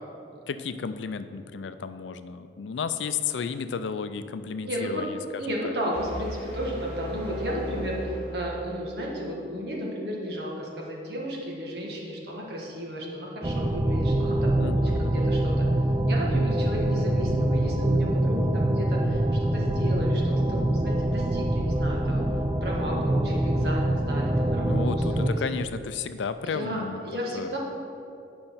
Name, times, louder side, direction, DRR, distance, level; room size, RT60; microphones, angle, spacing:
voice 1, 0.5-5.6 14.6-15.3 24.6-27.0 27.3-27.6, left 6 dB, 85° left, 11 dB, 0.4 m, -33 dB
voice 2, 4.6-5.1 5.3-15.7 16.1-22.3 22.6-25.4 26.4-27.6, equal, 65° right, -2 dB, 1.6 m, -33 dB
sound 1, 5.9-8.9, equal, 10° left, 2.1 m, -37 dB
sound 2, 13.4-25.3, right 1 dB, 20° right, 0.4 m, -24 dB
8.9 x 5.2 x 5.7 m, 2.6 s
head